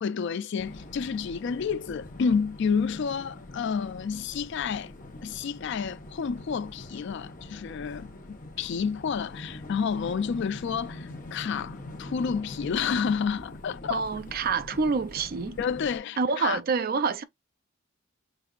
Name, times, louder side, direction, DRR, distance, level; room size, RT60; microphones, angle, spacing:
voice 1, 0.0-4.9 5.2-14.0 15.6-16.6, left 6 dB, 60° left, 0.3 m, -30 dB
sound 1, 0.6-16.0, left 1 dB, 40° left, 1.1 m, -43 dB
voice 2, 13.9-15.6 16.2-17.2, right 4 dB, 45° right, 0.4 m, -27 dB
5.3 x 3.3 x 2.3 m
head